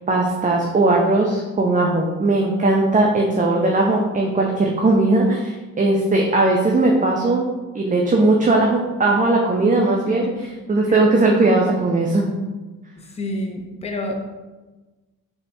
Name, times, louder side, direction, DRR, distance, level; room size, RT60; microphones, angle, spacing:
voice 1, 0.1-7.4 7.7-12.3, right 2 dB, 20° right, -1 dB, 0.6 m, -18 dB
voice 2, 13.0-14.2, left 1 dB, 15° left, 2 dB, 0.7 m, -29 dB
3.8 x 3.5 x 2.7 m, 1.2 s
supercardioid pair, 55°, 36 cm